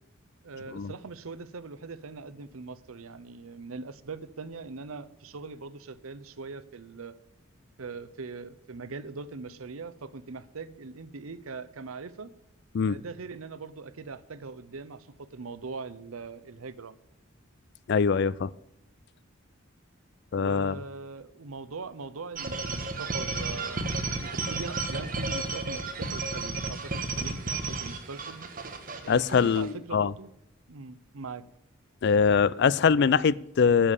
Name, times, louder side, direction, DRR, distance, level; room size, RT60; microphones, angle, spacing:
voice 1, 0.4-7.1 7.8-12.3 12.8-17.0 20.3-23.8 24.2-28.5 29.0-30.3 30.7-31.4, right 4 dB, 90° right, 0.7 m, -41 dB
voice 2, 17.9-18.5 20.3-20.7 29.1-30.1 32.0-33.9, left 6 dB, 55° left, 0.4 m, -23 dB
sound 1, 22.4-29.7, right 3 dB, 40° right, 1.4 m, -33 dB
10.0 x 7.4 x 8.3 m
head